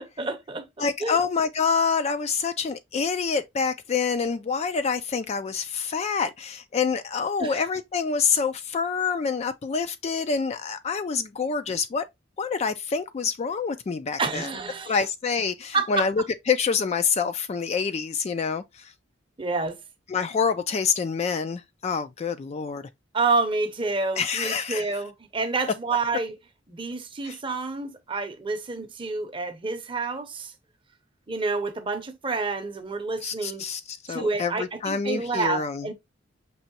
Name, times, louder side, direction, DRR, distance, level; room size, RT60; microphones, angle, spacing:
voice 1, 0.0-1.2 7.4-7.6 14.2-15.1 15.7-16.1 19.4-19.8 23.1-26.3 26.7-30.5 31.3-33.7 34.1-35.9, right 3 dB, 25° right, 0.7 m, -28 dB
voice 2, 0.8-12.1 12.4-14.5 14.9-18.9 20.1-22.8 24.2-25.0 27.2-27.4 33.2-35.9, left 5 dB, 35° left, 0.3 m, -27 dB
5.5 x 3.0 x 2.8 m
head